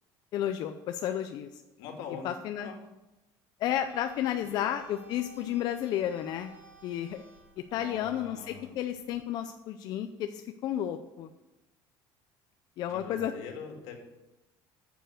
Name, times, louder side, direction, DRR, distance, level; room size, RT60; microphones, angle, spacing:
voice 1, 0.3-1.5 2.2-2.7 3.6-6.5 6.8-7.2 7.7-11.3 12.8-13.3, left 11 dB, 45° left, 7 dB, 0.5 m, -32 dB
voice 2, 1.8-2.3 2.6-2.8 4.3-4.7 7.7-8.8 12.8-14.0, left 6 dB, 80° left, 3 dB, 2.3 m, -43 dB
sound 1, 3.7-9.1, right 3 dB, 20° right, 1.9 m, -56 dB
9.1 x 6.9 x 6.4 m, 1.0 s
cardioid pair, 170°, 9 cm